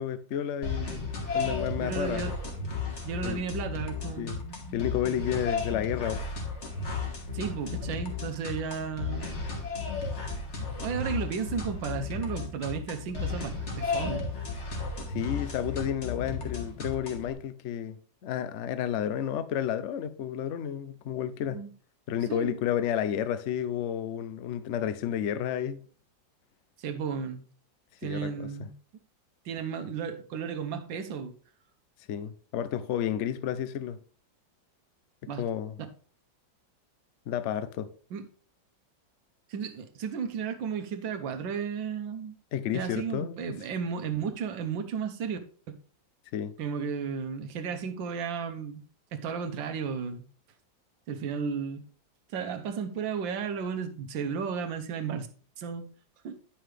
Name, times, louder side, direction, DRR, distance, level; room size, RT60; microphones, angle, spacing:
voice 1, 0.0-2.2 3.2-3.4 4.2-4.4 4.7-6.3 15.1-18.0 18.2-21.7 22.1-25.8 28.0-28.7 32.1-34.0 35.2-35.8 37.3-37.9 42.5-43.6 46.3-46.5, left 9 dB, 75° left, 0.6 m, -31 dB
sound 1, 0.6-17.3, left 4 dB, 40° left, 1.7 m, -34 dB
voice 2, 1.4-2.3 3.0-4.8 7.3-9.3 10.6-14.3 21.5-21.7 22.3-22.6 26.8-27.4 28.0-28.7 29.4-31.3 35.3-35.4 38.1-38.3 39.5-42.4 42.7-45.4 46.6-48.8 49.1-50.2 51.1-51.8 52.3-55.3 55.6-55.9 56.2-56.4, right 6 dB, 80° right, 1.6 m, -34 dB
9.2 x 5.8 x 3.3 m
omnidirectional pair, 2.0 m